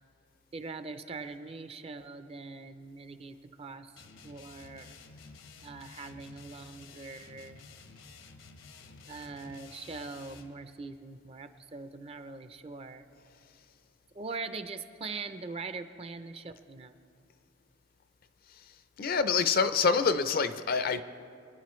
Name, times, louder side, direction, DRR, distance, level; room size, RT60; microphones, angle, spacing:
voice 1, 0.5-3.9 4.2-4.9 5.6-7.6 9.1-13.1 14.1-16.9, right 4 dB, 30° right, 0.5 m, -42 dB
sound 1, 4.0-10.6, left 4 dB, 80° left, 1.0 m, -52 dB
voice 2, 19.0-21.0, left 5 dB, 45° left, 0.5 m, -26 dB
25.0 x 10.0 x 3.1 m
head